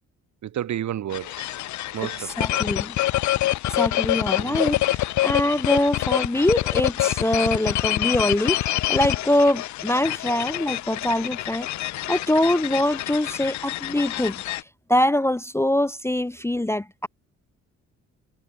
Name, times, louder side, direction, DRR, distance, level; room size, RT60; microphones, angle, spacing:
voice 1, 0.4-1.5 1.9-2.6 4.4-4.8, right 11 dB, 70° right, 3.2 m, -32 dB
sound 1, 1.1-14.6, left 15 dB, 70° left, 0.6 m, -26 dB
voice 2, 2.2-3.0 3.7-11.7 12.1-14.4 14.9-17.1, left 1 dB, 10° left, 0.8 m, -23 dB
cardioid pair, 90°, 30 cm